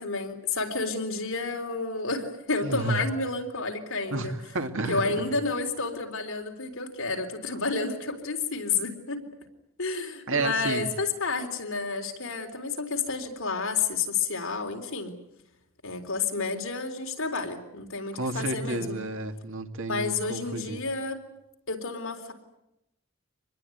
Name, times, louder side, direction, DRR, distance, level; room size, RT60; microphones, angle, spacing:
voice 1, 0.0-4.4 4.9-9.3 9.8-15.1 15.8-19.0 19.9-21.2 21.7-22.3, left 4 dB, 70° left, 4 dB, 3.9 m, -30 dB
voice 2, 2.6-3.0 4.1-5.1 10.3-10.9 18.2-20.8, right 3 dB, 65° right, 6 dB, 2.3 m, -31 dB
26.0 x 21.0 x 9.4 m, 0.87 s
head